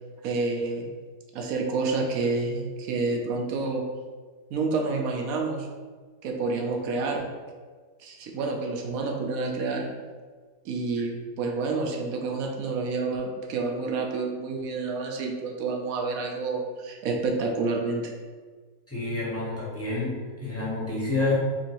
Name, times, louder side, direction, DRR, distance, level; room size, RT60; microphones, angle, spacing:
voice 1, 0.2-0.9 1.3-3.8 4.5-5.7 6.2-7.3 8.0-9.9 10.6-18.1, right 3 dB, 70° right, 1 dB, 0.9 m, -29 dB
voice 2, 18.9-21.4, left 2 dB, 20° left, -8 dB, 0.4 m, -28 dB
4.3 x 2.8 x 2.9 m, 1.5 s
omnidirectional pair, 1.8 m